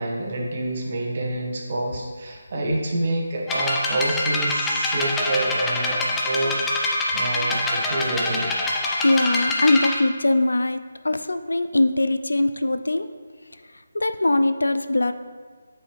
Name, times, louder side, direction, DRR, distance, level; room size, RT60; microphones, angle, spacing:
voice 1, 0.0-6.6 7.1-8.5, right 2 dB, 45° right, -2 dB, 1.4 m, -27 dB
sound 1, 3.5-10.0, left 2 dB, 10° left, 0.6 m, -25 dB
voice 2, 9.0-13.1 13.9-15.1, left 2 dB, 90° left, 10 dB, 0.4 m, -21 dB
8.1 x 4.8 x 3.1 m, 1.5 s
figure-of-eight pair, 160°, 0 cm